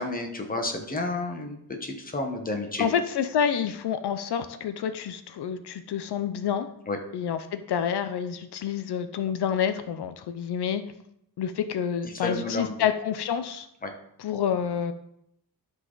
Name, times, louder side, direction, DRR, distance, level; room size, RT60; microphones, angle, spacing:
voice 1, 0.0-2.9 6.9-7.0 12.1-12.7 13.8-13.9, left 2 dB, 20° left, 3 dB, 1.1 m, -31 dB
voice 2, 2.8-6.7 7.1-10.8 11.4-13.7 14.2-14.9, left 8 dB, 85° left, 10 dB, 0.6 m, -28 dB
12.0 x 4.1 x 3.9 m, 0.76 s
wide cardioid pair, 155°, 39 cm